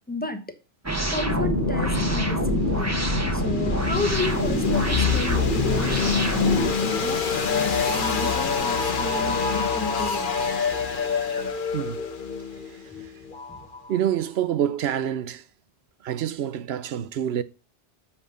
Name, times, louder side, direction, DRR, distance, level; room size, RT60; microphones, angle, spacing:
voice 1, 0.1-0.6 1.1-3.0 3.3-6.2 6.8-10.3 13.5-13.6, left 2 dB, 10° left, 1.0 m, -32 dB
sound 1, 0.8-6.7, right 2 dB, 15° right, 1.1 m, -26 dB
sound 2, 1.3-14.1, left 6 dB, 55° left, 1.2 m, -26 dB
voice 2, 11.7-12.0 13.9-15.4 16.0-17.4, right 10 dB, 80° right, 0.9 m, -26 dB
7.3 x 5.6 x 6.7 m
omnidirectional pair, 1.1 m